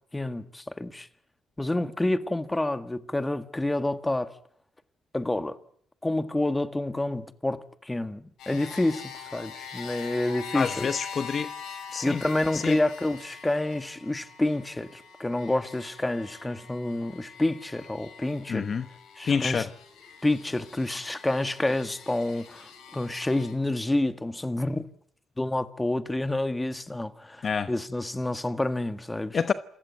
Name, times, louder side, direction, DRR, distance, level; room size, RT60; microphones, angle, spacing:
voice 1, 0.1-1.1 1.6-4.3 5.1-5.6 6.0-10.9 12.0-18.7 19.2-19.7 20.2-24.8 25.4-29.4, left 1 dB, 15° left, 1.7 m, -28 dB
sound 1, 8.4-23.5, left 6 dB, 85° left, 7.1 m, -44 dB
voice 2, 10.5-11.5 11.9-12.2 12.5-12.8 18.5-18.9 19.3-19.7 27.4-27.7 29.3-29.5, left 6 dB, 45° left, 1.0 m, -27 dB
28.0 x 16.0 x 9.4 m
cardioid pair, 90°, 0 cm